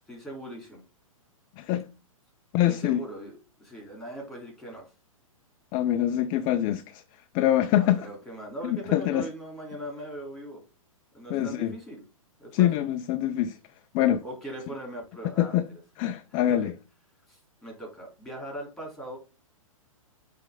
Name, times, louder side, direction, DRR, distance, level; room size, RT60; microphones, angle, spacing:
voice 1, 0.1-0.8 2.7-4.9 7.7-10.6 11.1-12.0 12.4-12.7 14.2-15.6 16.3-16.7 17.3-19.2, right 1 dB, ahead, 3.2 m, -40 dB
voice 2, 1.6-1.9 2.5-3.0 5.7-7.0 7.3-8.1 8.6-9.3 11.3-11.7 12.5-13.6 13.9-14.2 15.2-15.7 16.0-16.7, left 12 dB, 30° left, 0.4 m, -24 dB
8.8 x 3.3 x 3.7 m
hypercardioid pair, 120°, 18 cm